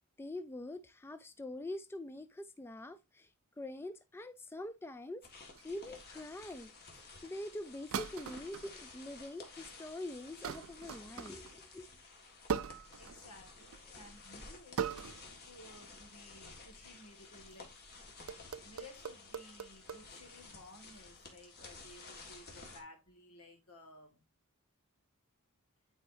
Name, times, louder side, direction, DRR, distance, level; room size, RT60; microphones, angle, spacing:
voice 1, 0.2-3.3 3.6-11.9, left 1 dB, 10° left, 0.3 m, -45 dB
sound 1, 5.2-22.8, left 3 dB, 45° left, 1.7 m, -53 dB
sound 2, 5.6-6.0 7.9-8.7 9.3-9.7 10.4-11.6 12.5-13.3 13.6-13.9 14.8-15.3 15.7-16.0 17.6-17.9 18.3-20.0, right 7 dB, 65° right, 0.4 m, -40 dB
voice 2, 13.0-17.7 18.6-24.2, left 2 dB, 80° left, 2.3 m, -56 dB
9.1 x 4.5 x 2.7 m
head